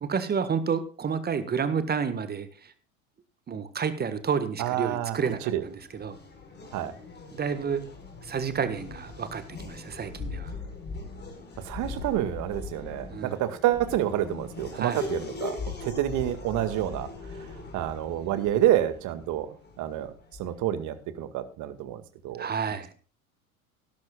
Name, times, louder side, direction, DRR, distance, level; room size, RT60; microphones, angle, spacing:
voice 1, 0.0-2.7 3.5-6.2 7.3-7.8 8.2-10.6 13.1-13.4 14.7-15.0 22.4-22.9, right 6 dB, 20° right, 12 dB, 1.6 m, -30 dB
voice 2, 4.6-5.2 5.5-5.6 6.7-6.9 11.6-17.1 17.4-17.5 17.7-20.1 20.4-22.5, right 12 dB, 45° right, 12 dB, 2.1 m, -28 dB
Race car auto racing / Accelerating revving vroom, 5.1-20.7, left 3 dB, 25° left, 5.0 m, -40 dB
17.5 x 13.0 x 2.4 m, 0.37 s
figure-of-eight pair, 80°, 43 cm